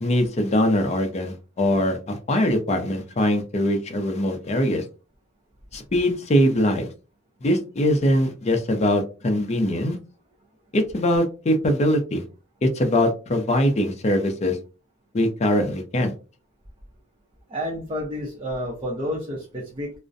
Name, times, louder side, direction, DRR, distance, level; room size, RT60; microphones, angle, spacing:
voice 1, 0.0-4.8 5.7-6.9 7.4-10.0 10.7-12.2 12.6-14.6 15.1-16.1, left 1 dB, 35° left, 5 dB, 0.5 m, -22 dB
voice 2, 17.5-19.9, equal, 25° right, -3 dB, 0.5 m, -30 dB
2.4 x 2.1 x 2.5 m, 0.33 s
head